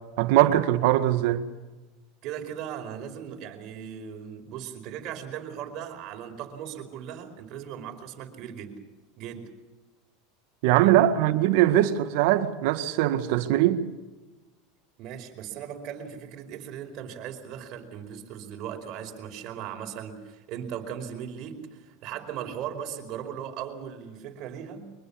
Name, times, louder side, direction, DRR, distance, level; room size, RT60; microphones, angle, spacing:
voice 1, 0.2-1.4 10.6-13.8, right 13 dB, 70° right, 1.8 m, -21 dB
voice 2, 2.2-8.8 9.2-9.5 10.8-10.9 15.0-24.9, right 9 dB, 50° right, 4.9 m, -38 dB
24.0 x 21.0 x 7.1 m
supercardioid pair, 110°, 0 cm